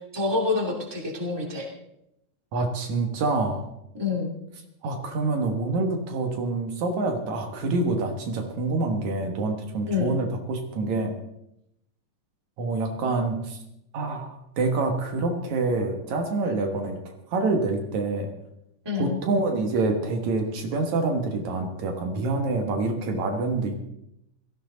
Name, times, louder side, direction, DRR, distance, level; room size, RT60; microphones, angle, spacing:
voice 1, 0.1-1.7 4.0-4.3 9.9-10.1 18.8-19.2, left 4 dB, 10° right, -1 dB, 2.4 m, -27 dB
voice 2, 2.5-3.7 4.8-11.1 12.6-13.6 13.9-18.3 19.0-23.8, right 3 dB, 75° right, 4 dB, 2.9 m, -26 dB
17.5 x 14.0 x 4.0 m, 0.82 s
omnidirectional pair, 3.3 m